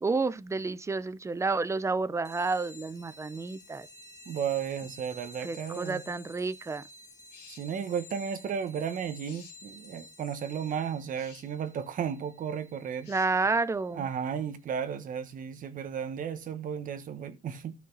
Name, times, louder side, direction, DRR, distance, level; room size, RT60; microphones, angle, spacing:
voice 1, 0.0-3.9 5.4-6.8 13.1-14.0, right 3 dB, 15° right, 0.6 m, -30 dB
sound 1, 2.3-14.4, left 2 dB, 20° left, 1.8 m, -52 dB
voice 2, 4.3-6.0 7.5-13.1 13.9-17.7, right 8 dB, 55° right, 1.4 m, -34 dB
sound 2, 7.3-7.7 9.2-9.6 11.1-11.5 13.0-13.3, left 8 dB, 80° left, 2.1 m, -53 dB
13.5 x 5.4 x 4.0 m
cardioid pair, 110°, 17 cm